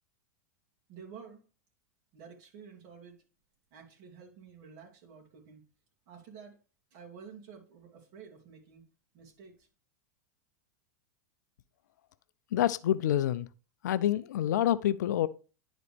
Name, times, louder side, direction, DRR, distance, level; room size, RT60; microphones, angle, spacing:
voice 1, 0.9-1.4 2.1-3.2 3.7-5.6 6.1-6.6 6.9-8.8 9.1-9.7, right 6 dB, 50° right, 2.8 m, -51 dB
voice 2, 12.5-13.5 13.8-15.3, left 12 dB, 75° left, 0.5 m, -27 dB
11.0 x 4.0 x 3.4 m
hypercardioid pair, 100°, 10 cm